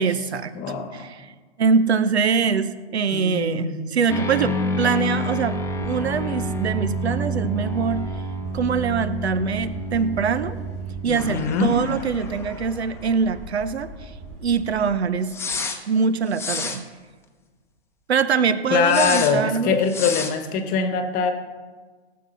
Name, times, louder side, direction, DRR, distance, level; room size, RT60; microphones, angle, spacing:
voice 1, 0.0-0.5 0.9-1.3 1.6-8.0 8.5-10.6 11.0-14.1 14.4-15.3 15.9-16.8 18.1-19.8, right 6 dB, 75° right, 13 dB, 1.0 m, -23 dB
voice 2, 0.5-1.1 3.1-3.9 11.0-11.8 18.7-21.3, left 5 dB, 25° left, 8 dB, 1.2 m, -23 dB
sound 1, 4.1-13.3 13.5-13.6 15.3-15.8 16.3-16.8 18.8-19.3 19.9-20.3, equal, 10° left, 0.9 m, -29 dB
sound 2, 5.5-15.0, equal, 20° right, 2.5 m, -41 dB
17.5 x 7.7 x 5.6 m, 1.4 s
hypercardioid pair, 125°, 32 cm